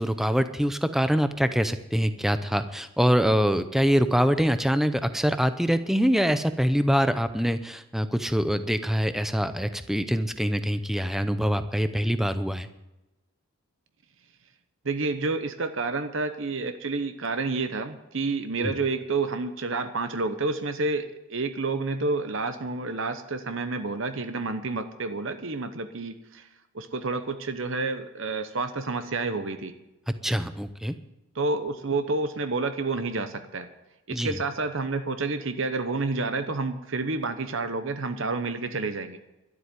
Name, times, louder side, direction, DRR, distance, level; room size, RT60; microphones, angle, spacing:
voice 1, 0.0-12.7 18.6-18.7 30.1-30.9 34.1-34.4, equal, ahead, 10 dB, 0.6 m, -24 dB
voice 2, 14.8-26.5 26.7-29.7 31.3-33.7 34.1-39.2, right 3 dB, 60° right, 8 dB, 0.9 m, -29 dB
12.5 x 8.0 x 9.7 m, 0.97 s
head